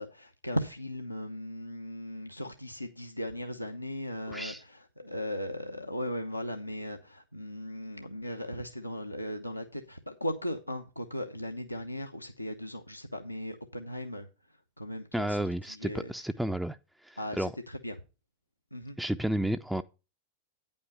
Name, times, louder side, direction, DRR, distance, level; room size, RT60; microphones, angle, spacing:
voice 1, 0.0-14.3 14.8-16.1 17.2-18.0 18.7-19.0, equal, 90° left, 0.7 m, -37 dB
voice 2, 4.3-4.6 15.1-16.8 17.0-17.5 19.0-19.8, right 1 dB, 5° right, 0.4 m, -32 dB
9.7 x 5.5 x 5.3 m
figure-of-eight pair, 90°, 0 cm